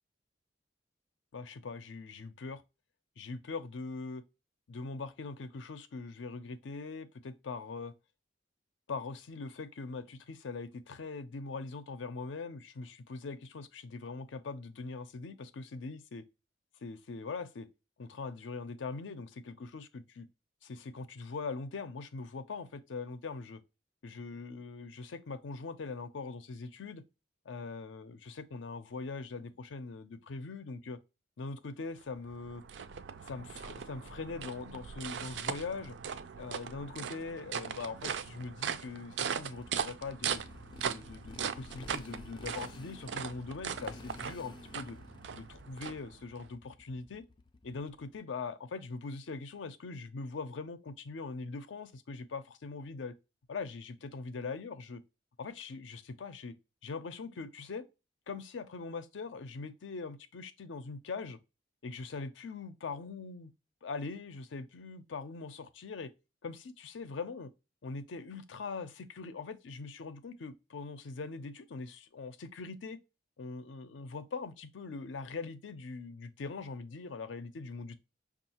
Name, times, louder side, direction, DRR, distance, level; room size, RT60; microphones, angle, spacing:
voice 1, 1.3-2.6 3.2-4.2 4.7-7.9 8.9-16.2 16.8-17.7 18.0-20.3 20.6-23.6 24.0-27.0 27.5-31.0 31.4-32.6 33.2-36.0 36.4-40.4 40.8-45.0 45.3-47.2 47.6-53.1 53.5-55.0 55.4-56.5 56.8-57.9 58.3-61.4 61.8-63.5 63.8-66.1 66.4-67.5 67.8-73.0 73.4-78.0, left 4 dB, 80° left, 0.5 m, -42 dB
sound 1, 32.0-46.5, right 7 dB, 70° right, 0.4 m, -39 dB
Motorcycle, 39.5-48.2, left 2 dB, 25° left, 0.3 m, -52 dB
5.4 x 2.4 x 2.8 m
head